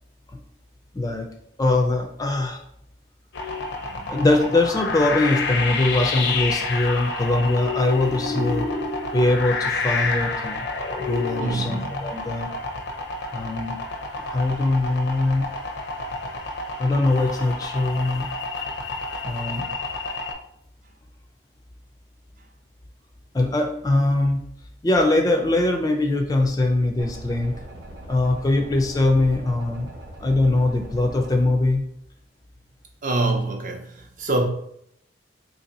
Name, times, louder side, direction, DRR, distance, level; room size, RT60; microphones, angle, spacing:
voice 1, 0.9-1.3 1.6-2.6 4.1-8.6 9.1-10.7 11.0-12.5 13.3-13.8 14.3-15.5 16.8-18.3 19.2-19.6 23.3-24.4 24.8-27.6 28.1-29.9 30.2-31.8, left 2 dB, 20° left, 0.3 m, -22 dB
sound 1, 3.3-20.3, left 3 dB, 75° left, 0.5 m, -29 dB
voice 2, 11.4-11.8 22.4-22.5 33.0-34.4, right 2 dB, 45° right, 0.6 m, -25 dB
sound 2, 27.0-31.4, right 1 dB, 80° right, 0.8 m, -40 dB
2.8 x 2.7 x 4.0 m
head